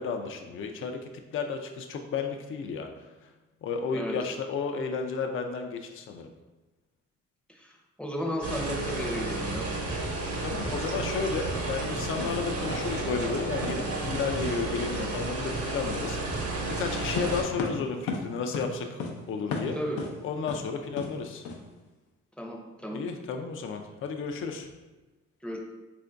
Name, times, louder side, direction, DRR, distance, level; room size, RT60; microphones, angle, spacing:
voice 1, 0.0-2.9 3.6-6.3 10.4-16.4 16.7-18.9 19.3-19.8 20.2-21.5 22.9-24.7, left 5 dB, 45° left, 4 dB, 0.4 m, -32 dB
voice 2, 8.0-9.7 19.7-20.0 22.4-23.0 25.4-25.6, equal, 5° left, 0 dB, 0.6 m, -34 dB
sound 1, 8.4-17.4, right 2 dB, 50° right, 1.0 m, -32 dB
sound 2, 12.2-12.3 12.7-12.8 13.1-13.4 13.6-13.8 14.1-14.2 17.2-18.2 18.5-18.7 19.0-19.1 19.5-20.1 20.5-20.6 21.0-21.1 21.4-21.6, left 4 dB, 85° left, 0.6 m, -33 dB
3.6 x 2.6 x 3.3 m, 1.2 s
cardioid pair, 90°, 30 cm